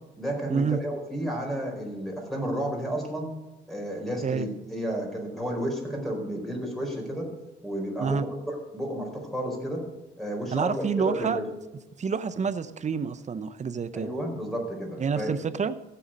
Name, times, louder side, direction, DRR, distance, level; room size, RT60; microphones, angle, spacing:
voice 1, 0.2-3.3 3.7-7.3 7.6-8.2 8.5-9.8 10.2-11.4 13.9-15.3, right 1 dB, ahead, 0 dB, 4.4 m, -32 dB
voice 2, 10.5-11.4 12.0-14.1 15.0-15.8, right 6 dB, 35° right, 14 dB, 0.8 m, -28 dB
15.5 x 7.0 x 5.2 m, 1.1 s
cardioid pair, 90°, 20 cm